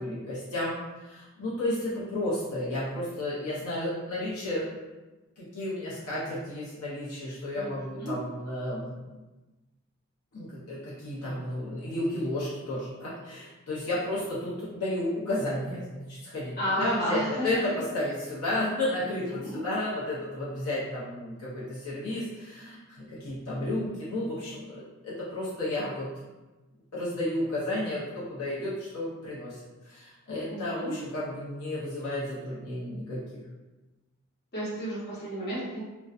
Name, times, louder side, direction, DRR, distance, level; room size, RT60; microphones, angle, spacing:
voice 1, 0.0-4.7 5.4-9.2 10.3-26.1 26.9-33.4, left 1 dB, 75° left, -8 dB, 0.7 m, -32 dB
voice 2, 7.5-8.1 16.6-17.6 19.3-19.6 30.5-31.0 34.5-35.8, equal, 45° left, -8 dB, 0.9 m, -32 dB
2.5 x 2.2 x 2.4 m, 1.1 s
head